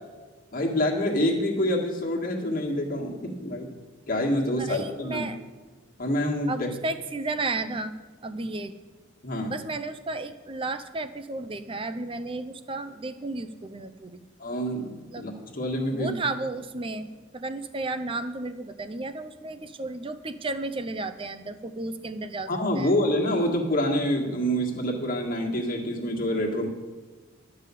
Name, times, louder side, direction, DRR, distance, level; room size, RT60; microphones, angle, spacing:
voice 1, 0.5-3.7 4.1-5.3 6.0-6.7 9.2-9.5 14.4-16.1 22.5-26.7, equal, 45° left, -1 dB, 1.7 m, -27 dB
voice 2, 4.6-5.4 6.5-8.0 8.2-8.7 9.5-14.2 15.1-15.2 15.9-22.5 22.7-22.9, right 2 dB, 25° right, 9 dB, 0.6 m, -33 dB
12.0 x 5.5 x 8.4 m, 1.4 s
head